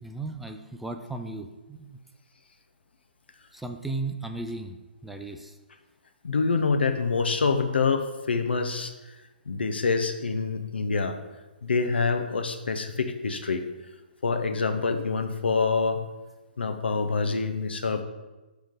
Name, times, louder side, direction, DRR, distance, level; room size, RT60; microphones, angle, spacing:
voice 1, 0.0-2.0 3.5-4.8 5.0-5.6, right 2 dB, 5° right, 4 dB, 0.3 m, -35 dB
voice 2, 6.2-9.1 9.5-11.2 11.6-13.7 14.2-16.0 16.6-18.0, left 4 dB, 80° left, 7 dB, 0.8 m, -26 dB
10.0 x 3.4 x 3.8 m, 1.1 s
hypercardioid pair, 145°, 6 cm